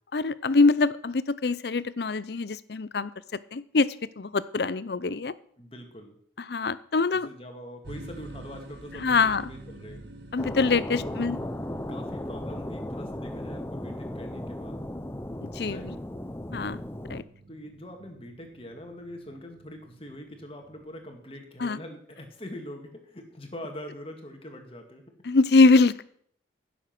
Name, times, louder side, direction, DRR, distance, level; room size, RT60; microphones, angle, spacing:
voice 1, 0.1-3.1 3.5-3.9 4.2-5.3 6.5-7.3 9.0-9.4 10.3-11.4 15.4-15.8 16.5-16.8 17.1-17.2 21.6-21.8 25.3-26.0, left 3 dB, 60° left, 17 dB, 0.6 m, -23 dB
voice 2, 5.6-6.2 7.2-10.0 10.9-11.3 11.9-14.9 15.6-15.9 17.5-25.1, equal, 30° left, 4 dB, 2.0 m, -43 dB
sound 1, 7.8-21.2, right 2 dB, 65° right, 1.8 m, -48 dB
sound 2, 10.4-17.2, left 1 dB, 15° left, 0.6 m, -36 dB
16.0 x 7.2 x 6.0 m, 0.63 s
head